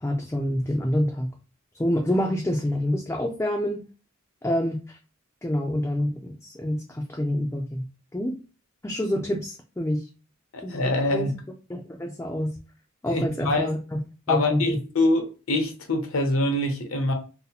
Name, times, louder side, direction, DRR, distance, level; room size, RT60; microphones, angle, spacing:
voice 1, 0.0-1.3 1.8-3.8 4.4-4.8 5.4-7.9 8.1-8.4 8.8-10.1 10.6-10.8 11.1-11.3 11.7-12.6 13.0-14.0 14.3-14.6, left 1 dB, 10° left, 0.4 m, -27 dB
voice 2, 10.5-11.3 13.1-13.8 14.3-17.1, left 2 dB, 75° left, 0.7 m, -24 dB
2.8 x 2.0 x 4.0 m
head